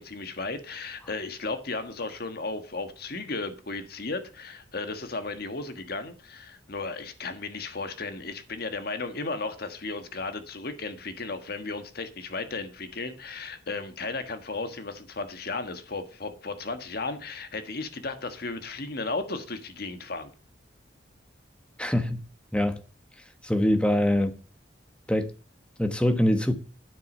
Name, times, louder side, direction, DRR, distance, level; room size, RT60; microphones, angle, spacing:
voice 1, 0.0-20.3, left 3 dB, 50° left, 1.4 m, -35 dB
voice 2, 21.8-22.2 22.5-22.8 23.4-24.4 25.1-25.3 25.8-26.5, left 1 dB, 5° left, 1.1 m, -24 dB
9.4 x 7.9 x 5.4 m
head